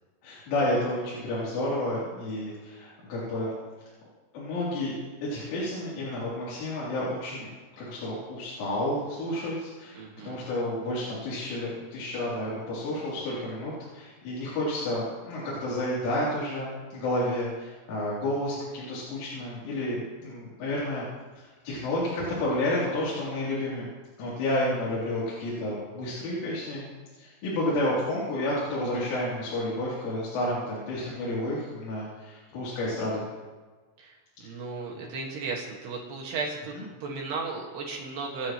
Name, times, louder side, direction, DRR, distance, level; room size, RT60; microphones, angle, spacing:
voice 1, 0.2-3.5 4.3-4.9 5.2-7.5 7.8-21.1 21.4-23.9 24.2-26.8 27.2-33.2 34.4-34.5 35.0-35.1 36.8-36.9, left 1 dB, 70° left, -8 dB, 5.6 m, -30 dB
voice 2, 9.9-10.4 34.0-34.2 34.4-36.7 37.0-38.5, right 4 dB, 60° right, -1 dB, 3.3 m, -35 dB
26.5 x 10.0 x 3.1 m, 1.3 s
omnidirectional pair, 6.0 m